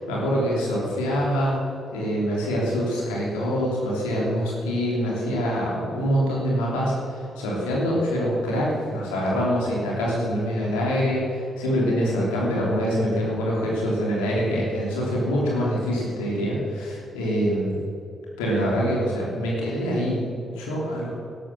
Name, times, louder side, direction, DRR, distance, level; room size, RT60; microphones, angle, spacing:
voice 1, 0.1-1.6 1.9-17.8 18.4-21.2, equal, 80° left, -4 dB, 3.2 m, -25 dB
12.5 x 11.5 x 6.3 m, 2.6 s
hypercardioid pair, 40°, 0 cm